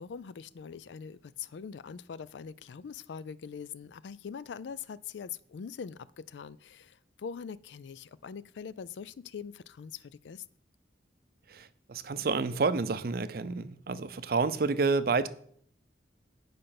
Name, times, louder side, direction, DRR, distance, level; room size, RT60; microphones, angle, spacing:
voice 1, 0.0-10.4, left 6 dB, 85° left, 0.4 m, -43 dB
voice 2, 11.5-15.3, right 4 dB, 55° right, 0.5 m, -29 dB
8.8 x 5.2 x 5.9 m
head